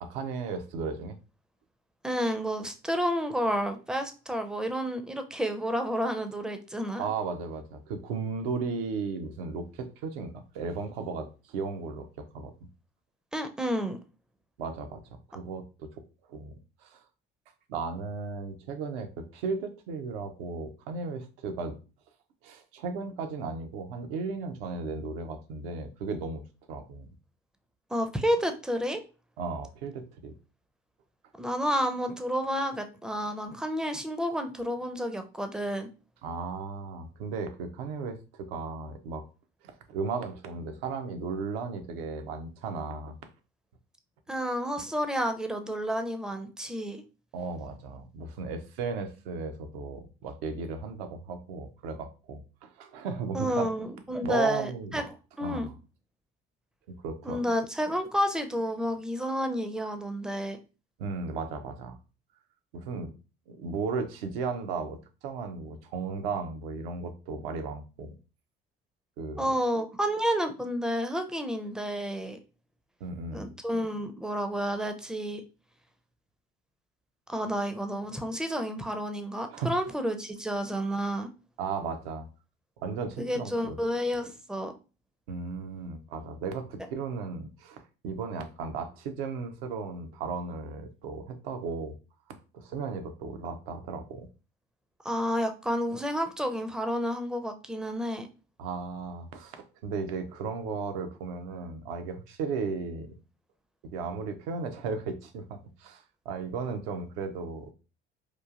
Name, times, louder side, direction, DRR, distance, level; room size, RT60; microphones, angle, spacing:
voice 1, 0.0-1.2 7.0-12.5 14.6-15.0 15.3-15.9 16.3-16.5 16.8-17.0 17.7-21.8 22.4-26.4 26.7-27.1 29.4-30.3 36.2-39.2 39.6-43.1 47.3-53.7 54.2-55.0 55.4-55.7 56.9-57.4 61.0-62.0 62.7-63.1 63.5-68.1 69.2-69.4 73.0-73.5 79.5-79.8 81.6-82.3 82.8-83.8 85.3-91.9 92.5-94.3 98.6-103.1 103.8-107.7, right 4 dB, 75° right, 7 dB, 0.6 m, -35 dB
voice 2, 2.0-7.0 13.3-14.0 27.9-29.0 31.4-35.9 44.3-47.0 53.3-55.1 55.4-55.7 57.2-60.6 69.4-72.4 73.3-75.4 77.3-81.3 83.2-84.7 95.0-98.3, equal, ahead, 7 dB, 0.4 m, -30 dB
3.0 x 2.3 x 2.4 m, 0.32 s
hypercardioid pair, 60°, 30 cm